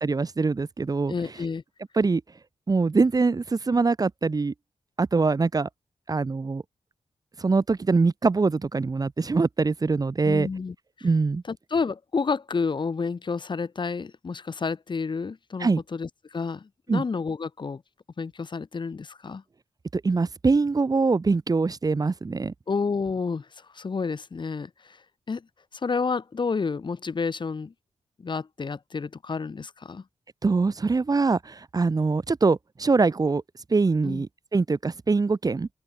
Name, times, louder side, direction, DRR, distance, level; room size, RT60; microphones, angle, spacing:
voice 1, 0.0-1.1 1.9-2.2 2.7-4.5 5.0-5.7 6.1-6.6 7.4-10.5 11.0-11.4 15.6-15.8 16.9-17.0 19.9-22.5 30.4-33.4 33.7-35.7, right 4 dB, 35° right, 2.5 m, -23 dB
voice 2, 1.1-1.6 10.2-11.1 11.5-17.8 18.2-19.4 22.7-23.5 23.7-25.0 25.3-25.5 25.8-27.7 28.2-30.0 34.0-34.3, left 5 dB, 45° left, 4.0 m, -30 dB
open air
wide cardioid pair, 130°, 11 cm